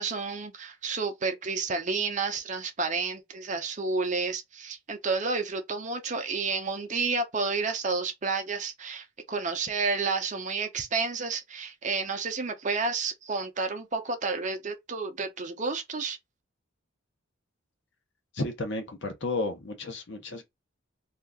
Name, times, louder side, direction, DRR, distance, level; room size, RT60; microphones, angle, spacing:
voice 1, 0.0-16.2, right 4 dB, 35° right, 0.6 m, -30 dB
voice 2, 18.3-20.4, left 2 dB, 55° left, 0.9 m, -32 dB
2.8 x 2.5 x 3.6 m
head